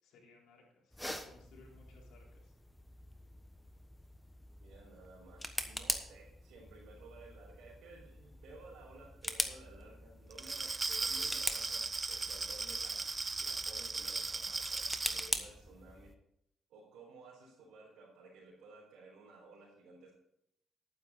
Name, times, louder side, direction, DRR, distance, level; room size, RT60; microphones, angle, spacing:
voice 1, 0.0-2.5, left 3 dB, 85° left, -2 dB, 4.0 m, -62 dB
sound 1, 0.9-16.2, left 1 dB, 10° left, 1.2 m, -43 dB
voice 2, 4.6-13.1 13.4-16.2 16.7-20.1, right 3 dB, 80° right, -6 dB, 3.8 m, -56 dB
Glass, 10.3-15.3, right 3 dB, 30° right, 0.5 m, -37 dB
11.0 x 9.5 x 4.2 m, 0.75 s
cardioid pair, 90°, 0 cm